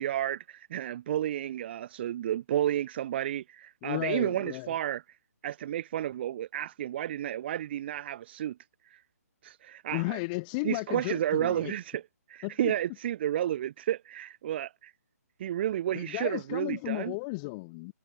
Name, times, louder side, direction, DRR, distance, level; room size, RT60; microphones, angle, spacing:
voice 1, 0.0-5.2 5.4-8.6 8.8-9.0 9.4-10.2 10.6-12.0 12.3-14.9 15.4-17.1, right 11 dB, 40° right, 4.1 m, -31 dB
voice 2, 3.8-4.7 9.9-11.7 12.4-12.7 15.9-17.9, left 28 dB, 25° left, 3.0 m, -34 dB
hypercardioid pair, 155°, 9 cm